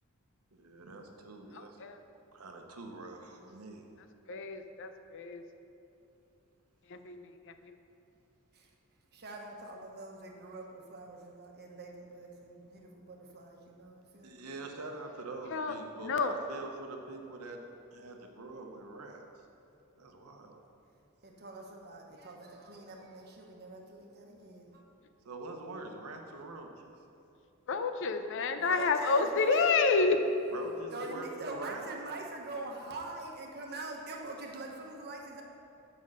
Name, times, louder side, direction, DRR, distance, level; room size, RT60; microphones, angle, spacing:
voice 1, 0.7-1.8 2.3-3.9 14.2-17.6 18.0-19.3 20.0-20.6 25.2-26.9 30.5-31.9, right 3 dB, 80° right, 3 dB, 0.9 m, -44 dB
voice 2, 1.5-2.0 4.3-5.4 6.9-7.3 7.6-7.7 15.5-15.7 16.0-16.3 27.7-30.2, left 4 dB, 60° left, 8 dB, 0.6 m, -29 dB
voice 3, 9.1-14.5 21.2-24.8 28.6-30.0 30.9-35.4, right 2 dB, 50° right, 0 dB, 1.1 m, -44 dB
7.5 x 5.4 x 6.4 m, 2.8 s
head